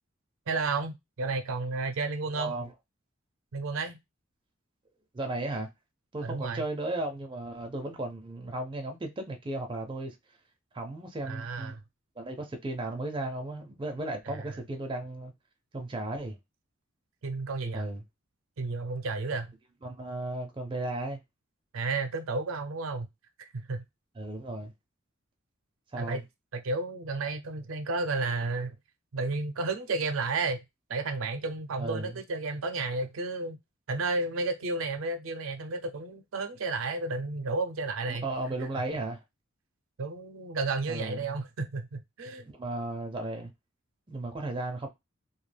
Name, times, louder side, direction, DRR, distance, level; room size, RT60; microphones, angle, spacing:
voice 1, 0.5-2.5 3.5-4.0 6.2-6.6 11.3-11.8 14.3-14.6 17.2-17.9 18.6-19.5 21.7-23.1 23.5-23.8 26.0-26.2 26.5-28.8 29.1-30.6 30.9-33.6 33.9-38.2 40.0-42.5, right 3 dB, 85° right, 0.5 m, -32 dB
voice 2, 2.3-2.7 5.1-5.7 6.1-10.1 10.7-11.8 12.2-15.3 15.7-16.4 17.7-18.0 19.8-21.2 24.2-24.7 25.9-26.2 31.8-32.2 38.1-39.2 40.9-41.4 42.5-43.5 44.1-44.9, right 2 dB, 25° right, 0.4 m, -35 dB
2.3 x 2.2 x 3.2 m
head